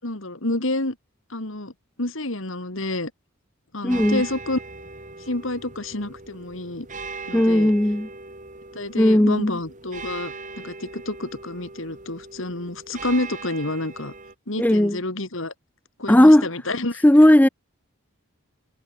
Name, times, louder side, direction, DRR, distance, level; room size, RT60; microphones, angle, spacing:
voice 1, 0.0-1.0 1.3-1.7 2.0-3.1 3.7-4.6 5.3-6.9 7.3-7.7 8.7-14.1 14.5-15.5 16.0-17.3, left 2 dB, 65° left, 2.6 m, -29 dB
voice 2, 3.8-4.2 7.3-8.1 9.0-9.5 14.6-15.0 16.1-16.5 17.0-17.5, left 1 dB, 5° left, 0.4 m, -15 dB
sound 1, 3.9-14.3, right 4 dB, 35° right, 4.1 m, -40 dB
head